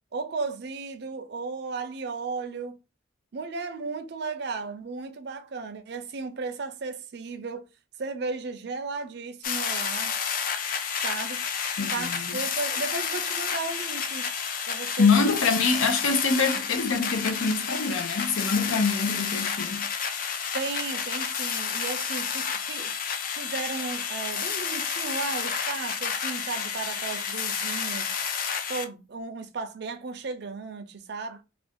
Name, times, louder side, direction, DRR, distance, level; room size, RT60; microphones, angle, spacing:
voice 1, 0.1-2.7 3.3-7.6 8.0-10.1 11.0-11.5 11.9-14.3 14.7-15.3 20.5-22.9 23.4-28.2 28.7-31.4, right 4 dB, 55° right, 0.4 m, -35 dB
sound 1, 9.4-28.8, left 7 dB, 45° left, 0.4 m, -30 dB
voice 2, 11.8-12.4 15.0-19.8, left 4 dB, 90° left, 0.7 m, -25 dB
2.5 x 2.4 x 3.5 m
head